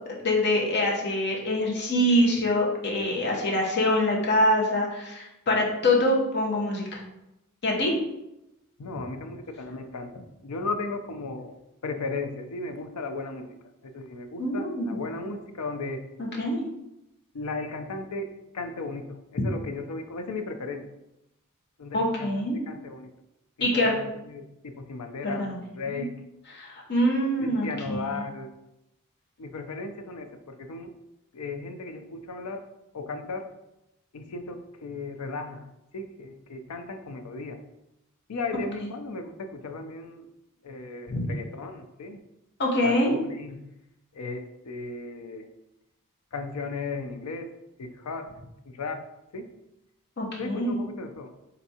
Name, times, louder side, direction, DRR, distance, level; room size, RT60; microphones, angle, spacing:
voice 1, 0.2-7.0 7.6-7.9 14.4-15.0 16.2-16.6 21.9-22.6 23.6-23.9 25.2-25.6 26.0-26.1 26.5-28.2 41.1-41.2 42.6-43.1 50.2-50.8, left 1 dB, 50° left, -2 dB, 0.9 m, -25 dB
voice 2, 8.8-11.5 11.8-13.6 13.8-16.0 17.3-20.8 21.8-23.1 23.6-25.5 25.7-26.1 27.4-28.5 29.4-30.9 31.3-32.6 32.9-33.5 34.1-35.7 35.9-37.6 38.3-40.3 40.6-42.2 42.8-43.6 44.1-45.5 46.3-47.5 47.8-48.3 48.7-49.0 49.3-49.5 50.4-51.3, left 3 dB, 85° left, 7 dB, 0.5 m, -36 dB
4.0 x 3.4 x 2.8 m, 0.90 s
head